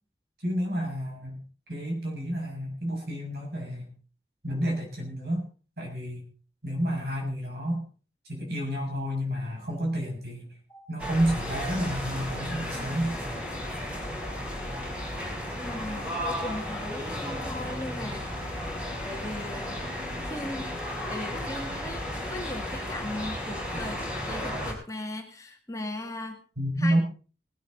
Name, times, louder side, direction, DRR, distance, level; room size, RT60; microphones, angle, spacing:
voice 1, 0.4-1.4 1.7-3.9 4.4-5.4 5.8-6.2 6.6-7.8 8.3-10.5 10.9-13.1 26.6-27.0, equal, 65° right, 1 dB, 6.9 m, -30 dB
sound 1, 11.0-24.7, left 1 dB, 5° right, 5.2 m, -34 dB
voice 2, 15.6-18.3 19.0-19.8 20.2-20.8 21.1-26.4 26.8-27.0, left 1 dB, 20° left, 3 dB, 2.0 m, -38 dB
19.0 x 13.0 x 4.1 m, 0.37 s
head